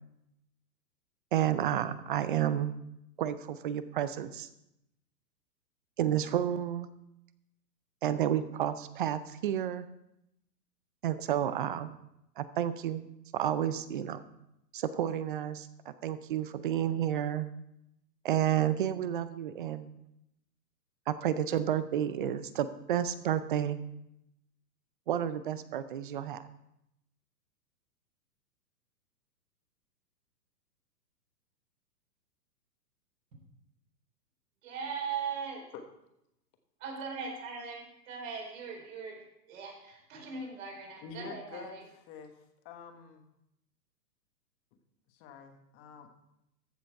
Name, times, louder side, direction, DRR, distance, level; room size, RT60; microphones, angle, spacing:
voice 1, 1.3-2.8 3.2-4.5 6.0-6.9 8.0-9.9 11.0-12.0 12.4-13.0 13.3-14.3 14.7-17.5 18.2-19.9 21.1-23.8 25.1-26.4, right 10 dB, 35° right, 14 dB, 0.5 m, -31 dB
voice 2, 34.6-35.6 36.8-39.2 39.5-41.8, right 5 dB, 50° right, -1 dB, 4.5 m, -39 dB
voice 3, 41.0-41.8 42.1-42.4 42.6-43.2 45.1-46.1, left 5 dB, 25° left, 6 dB, 1.2 m, -47 dB
14.5 x 6.8 x 4.6 m, 0.83 s
hypercardioid pair, 140°, 49 cm